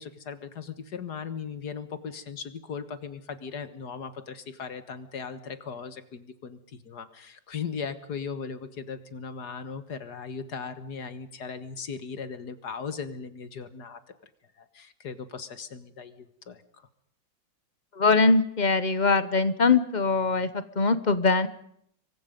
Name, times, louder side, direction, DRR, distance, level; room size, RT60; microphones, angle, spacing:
voice 1, 0.0-14.0 14.6-16.9, left 6 dB, 60° left, 11 dB, 2.0 m, -38 dB
voice 2, 17.9-21.5, left 4 dB, 35° left, 13 dB, 0.8 m, -22 dB
27.5 x 23.5 x 5.3 m, 0.70 s
omnidirectional pair, 2.1 m